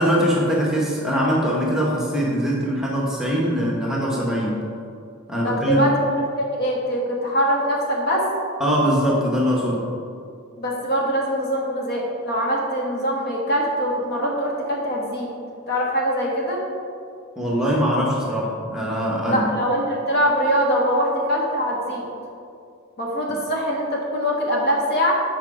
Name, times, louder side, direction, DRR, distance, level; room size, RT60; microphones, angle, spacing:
voice 1, 0.0-4.6 5.3-5.8 8.6-9.9 17.4-19.5, equal, ahead, -4 dB, 0.9 m, -22 dB
voice 2, 5.4-6.1 6.4-8.2 10.6-15.3 15.7-16.6 19.2-22.1 23.0-25.1, equal, 50° left, -2 dB, 1.3 m, -23 dB
7.4 x 4.8 x 4.8 m, 2.4 s
head